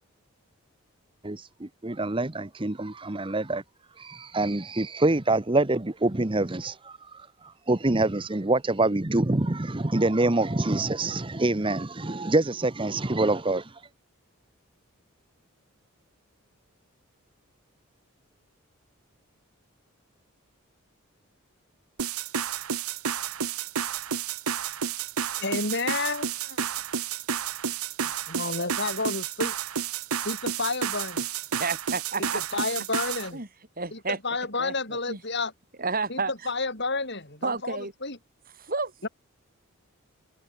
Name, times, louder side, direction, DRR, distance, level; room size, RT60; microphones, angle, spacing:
voice 1, 1.2-3.6 4.0-13.8, right 2 dB, 25° right, 0.9 m, -26 dB
sound 1, 22.0-33.3, right 7 dB, 90° right, 1.2 m, -31 dB
voice 2, 25.4-26.7 28.0-29.5 30.2-31.2 32.2-33.4 33.9-35.5 36.1-38.2 39.0-39.1, left 3 dB, 50° left, 7.2 m, -31 dB
voice 3, 31.5-32.6 33.3-33.5 33.8-34.2 34.6-35.2 35.8-36.3 37.4-37.9 38.6-39.1, right 4 dB, 40° right, 4.6 m, -31 dB
head